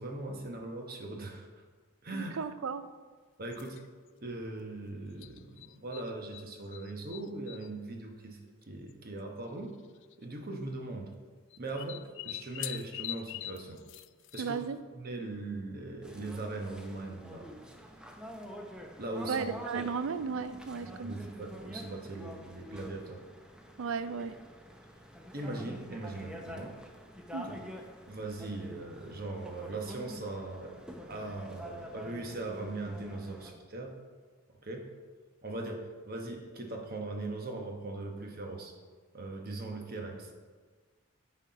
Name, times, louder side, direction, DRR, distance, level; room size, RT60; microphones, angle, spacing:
voice 1, 0.0-1.5 2.0-2.4 3.4-3.8 4.2-8.4 8.7-9.7 10.2-11.1 11.6-13.8 14.3-14.6 14.9-17.5 19.0-19.5 21.0-23.2 25.3-26.7 27.4-27.6 28.1-30.7 31.1-33.9 34.6-34.9 35.4-38.7 39.1-40.3, right 2 dB, 45° right, 2 dB, 1.0 m, -40 dB
voice 2, 2.1-2.8 14.4-14.8 19.3-21.4 23.8-24.4 27.3-27.5, right 5 dB, 75° right, 12 dB, 0.4 m, -35 dB
sound 1, 3.5-3.9 5.2-6.5 6.7-7.7 8.6-8.7 8.9-9.0 9.9-10.2 11.5-14.7, left 14 dB, 60° left, 0.3 m, -43 dB
sound 2, 16.0-33.5, equal, 5° right, 0.6 m, -47 dB
9.7 x 4.3 x 5.1 m, 1.5 s
head